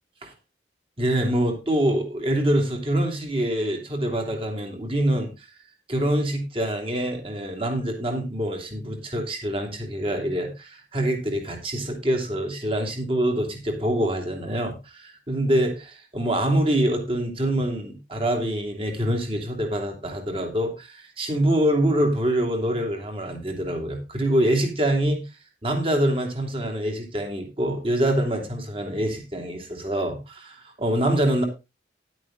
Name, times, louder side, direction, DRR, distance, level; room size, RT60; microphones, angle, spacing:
voice 1, 1.0-5.5 5.9-25.2 25.6-31.4, right 1 dB, 30° right, 3 dB, 2.7 m, -25 dB
11.0 x 9.1 x 3.7 m, 0.26 s
head